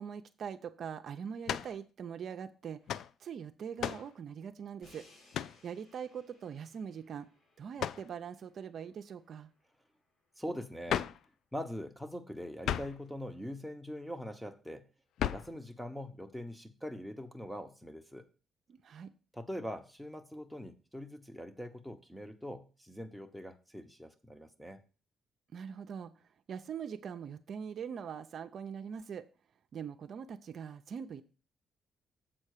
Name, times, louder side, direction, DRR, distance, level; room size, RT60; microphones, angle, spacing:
voice 1, 0.0-2.8 3.2-5.1 5.6-7.3 7.6-9.5 18.7-19.1 25.5-26.1 26.5-29.2 29.7-31.2, right 7 dB, 60° right, 7 dB, 0.6 m, -42 dB
sound 1, 1.5-1.8 2.9-3.1 3.8-4.1 5.3-5.6 7.8-8.1 10.9-11.3 12.6-13.0 15.2-15.6, left 10 dB, 75° left, 0.3 m, -34 dB
Crash cymbal, 4.8-10.8, left 2 dB, 60° left, 4.5 m, -65 dB
voice 2, 10.4-11.1 11.5-14.9 15.3-18.3 19.3-24.8, equal, ahead, 9 dB, 1.0 m, -43 dB
7.5 x 4.3 x 6.6 m, 0.35 s
cardioid pair, 90°, 0 cm